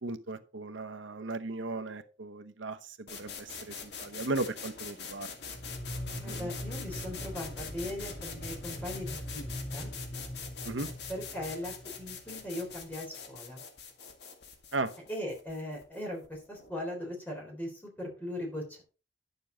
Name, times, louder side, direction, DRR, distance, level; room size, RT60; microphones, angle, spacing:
voice 1, 0.0-5.3 6.2-6.5 10.6-10.9 14.7-14.9, right 2 dB, 90° right, 10 dB, 0.9 m, -36 dB
sound 1, 3.1-16.8, left 6 dB, 65° left, 1.9 m, -44 dB
sound 2, 5.4-12.7, equal, 5° right, 2.5 m, -42 dB
voice 2, 6.2-9.9 11.1-13.6 15.1-18.8, left 1 dB, 10° left, -1 dB, 3.6 m, -39 dB
10.5 x 6.9 x 3.9 m, 0.34 s
head